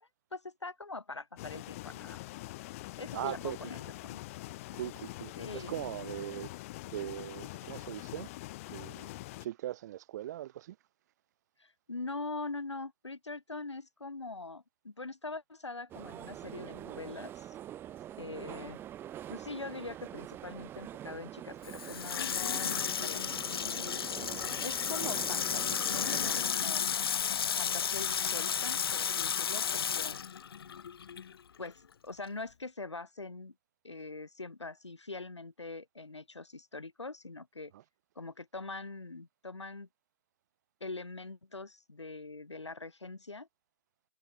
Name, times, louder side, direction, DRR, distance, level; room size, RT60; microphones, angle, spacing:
voice 1, 0.0-2.2 3.0-4.2 5.4-5.7 11.6-17.6 18.2-18.8 19.3-26.9 27.6-30.2 31.6-33.5 33.8-37.7 38.2-39.9 40.8-43.5, left 3 dB, 80° left, 2.0 m, -43 dB
sound 1, 1.4-9.5, left 19 dB, 30° left, 1.8 m, -44 dB
voice 2, 3.1-3.7 4.7-6.5 6.9-8.3 8.7-10.8 37.7-37.8, right 13 dB, 40° right, 2.8 m, -40 dB
sound 2, 15.9-26.5, right 11 dB, 15° right, 2.9 m, -45 dB
Water tap faucet / Sink (filling or washing), 21.6-31.3 31.7-31.8, left 7 dB, 55° left, 0.5 m, -33 dB
figure-of-eight pair, 135°, 15 cm